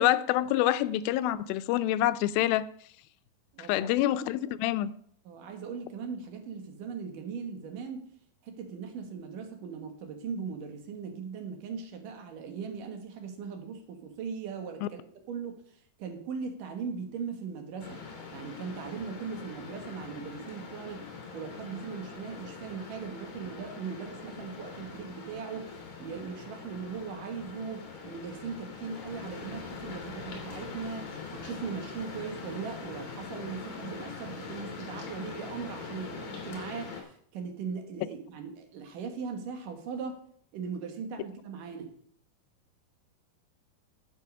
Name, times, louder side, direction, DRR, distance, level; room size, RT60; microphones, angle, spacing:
voice 1, 0.0-2.7 3.7-4.9 14.8-14.9, left 14 dB, 90° left, 2.4 m, -26 dB
voice 2, 3.5-4.0 5.3-8.0 8.4-15.0 15.3-18.0 18.3-40.2 40.5-41.9, right 6 dB, 70° right, 2.8 m, -39 dB
sound 1, 17.8-37.0, left 5 dB, 55° left, 3.1 m, -43 dB
11.0 x 7.6 x 5.4 m
omnidirectional pair, 4.1 m